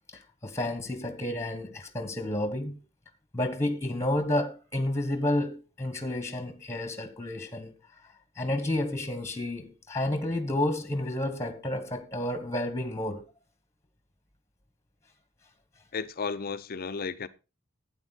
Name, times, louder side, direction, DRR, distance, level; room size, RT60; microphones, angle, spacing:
voice 1, 0.1-2.8 3.3-7.7 8.4-13.2, left 1 dB, 15° left, 1.3 m, -30 dB
voice 2, 15.9-17.3, left 5 dB, 45° left, 0.6 m, -33 dB
12.0 x 8.8 x 4.0 m
head